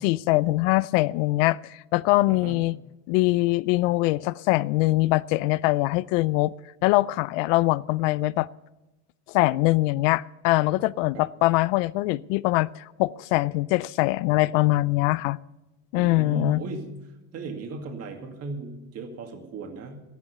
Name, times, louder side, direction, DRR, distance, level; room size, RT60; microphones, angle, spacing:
voice 1, 0.0-2.8 3.1-6.5 6.8-8.5 9.3-15.4 15.9-16.6, left 19 dB, 80° left, 19 dB, 0.5 m, -23 dB
voice 2, 2.3-2.6 11.1-11.2 15.9-16.9 17.3-20.0, right 3 dB, 40° right, 4 dB, 2.2 m, -36 dB
13.0 x 11.0 x 6.8 m, 0.99 s
cardioid pair, 140°, 37 cm